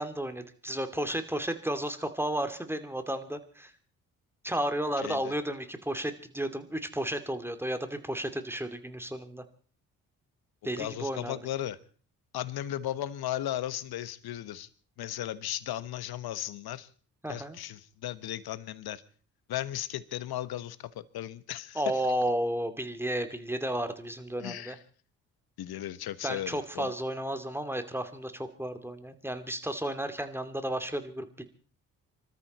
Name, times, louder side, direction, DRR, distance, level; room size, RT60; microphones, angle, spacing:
voice 1, 0.0-3.7 4.4-9.4 10.6-11.3 17.2-17.6 21.7-24.8 26.2-31.4, right 1 dB, 5° right, 9 dB, 2.6 m, -33 dB
voice 2, 5.0-5.3 10.8-11.8 12.3-14.7 15.0-16.9 17.3-19.0 19.5-21.8 24.4-24.7 25.6-26.9, left 12 dB, 65° left, 16 dB, 1.3 m, -36 dB
25.5 x 13.5 x 4.3 m, 0.41 s
hypercardioid pair, 45°, 40 cm